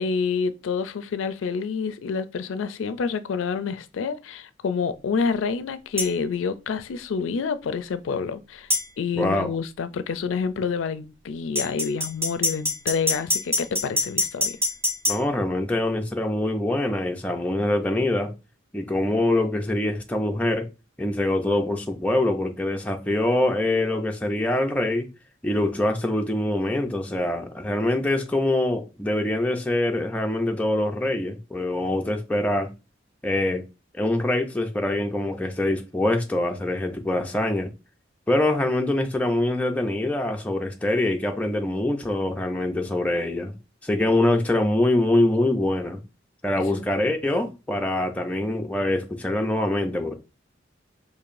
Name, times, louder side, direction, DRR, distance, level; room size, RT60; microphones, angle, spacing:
voice 1, 0.0-8.7 9.0-14.6 46.7-46.8, left 5 dB, 85° left, 0.4 m, -28 dB
sound 1, 6.0-6.1 8.7-8.9 11.6-15.2, left 1 dB, 15° right, 1.2 m, -24 dB
voice 2, 9.1-9.5 15.1-18.3 18.7-20.7 21.0-25.1 25.4-32.7 33.2-33.6 33.9-37.7 38.3-43.5 43.8-46.0 46.4-50.1, left 1 dB, 5° left, 0.4 m, -24 dB
4.7 x 2.7 x 2.5 m
head